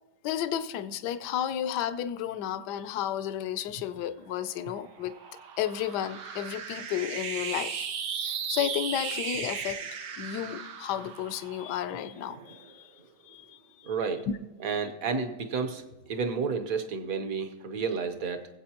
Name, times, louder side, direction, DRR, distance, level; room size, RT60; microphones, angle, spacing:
voice 1, 0.2-5.2 5.6-7.9 8.2-9.9 10.2-13.9 14.3-14.4, left 10 dB, 75° left, 1.2 m, -33 dB
sound 1, 4.1-12.8, right 6 dB, 85° right, 1.6 m, -37 dB
voice 2, 13.8-14.3 14.6-18.5, right 5 dB, 55° right, 1.4 m, -31 dB
23.5 x 8.2 x 2.9 m
omnidirectional pair, 1.8 m